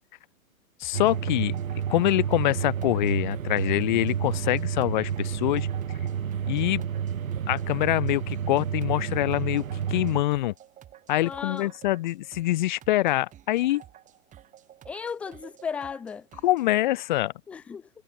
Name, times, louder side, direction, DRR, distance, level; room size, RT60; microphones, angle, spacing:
voice 1, 0.8-1.6 1.9-5.7 6.5-6.8 7.5-10.5 11.1-13.8 16.4-17.3, left 16 dB, 35° left, 0.8 m, -25 dB
sound 1, 0.8-16.7, right 11 dB, 20° right, 2.2 m, -51 dB
sound 2, 0.9-10.2, right 8 dB, 70° right, 0.8 m, -30 dB
voice 2, 11.2-11.7 14.9-16.3 17.5-17.9, left 6 dB, 5° left, 0.4 m, -35 dB
figure-of-eight pair, 110°, 42 cm